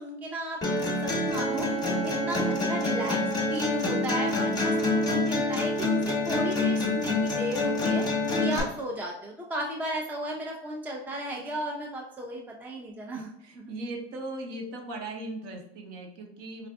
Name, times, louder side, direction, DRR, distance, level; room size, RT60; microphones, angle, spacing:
voice 1, 0.0-1.7 2.0-8.1 8.4-13.3 13.5-13.7, right 1 dB, 5° right, 0 dB, 0.5 m, -35 dB
sound 1, 0.6-8.6, left 2 dB, 10° left, 0.9 m, -27 dB
voice 2, 13.1-16.7, right 2 dB, 50° right, 3 dB, 0.9 m, -38 dB
4.9 x 2.4 x 2.3 m, 0.72 s
hypercardioid pair, 100°, 33 cm